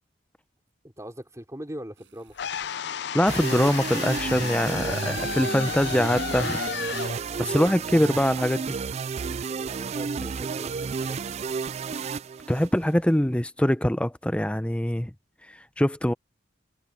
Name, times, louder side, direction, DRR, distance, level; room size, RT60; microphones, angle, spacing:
voice 1, 0.8-2.3 9.6-11.4, equal, 15° right, 3.3 m, -41 dB
sound 1, 2.0-2.9 3.9-4.6 5.7-7.2, right 3 dB, 70° right, 7.8 m, -57 dB
sound 2, 2.4-8.5, left 8 dB, 60° left, 0.5 m, -33 dB
voice 2, 3.1-6.6 7.4-8.8 12.5-15.1 15.5-16.1, equal, 5° left, 0.6 m, -23 dB
sound 3, 3.3-12.9, right 5 dB, 35° right, 0.3 m, -31 dB
head